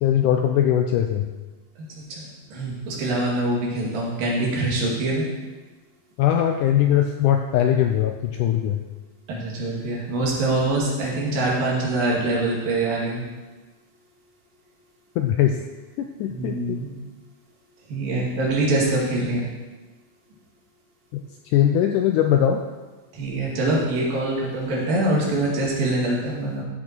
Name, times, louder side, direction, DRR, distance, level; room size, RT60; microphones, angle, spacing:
voice 1, 0.0-1.3 6.2-8.8 15.2-15.6 16.2-16.8 21.1-21.2 21.5-22.6, left 10 dB, 80° left, 5 dB, 1.9 m, -20 dB
voice 2, 2.0-5.3 9.3-13.2 16.3-16.9 17.9-19.5 23.1-26.6, right 2 dB, 75° right, -3 dB, 3.9 m, -24 dB
13.5 x 6.3 x 4.5 m, 1.2 s
omnidirectional pair, 4.1 m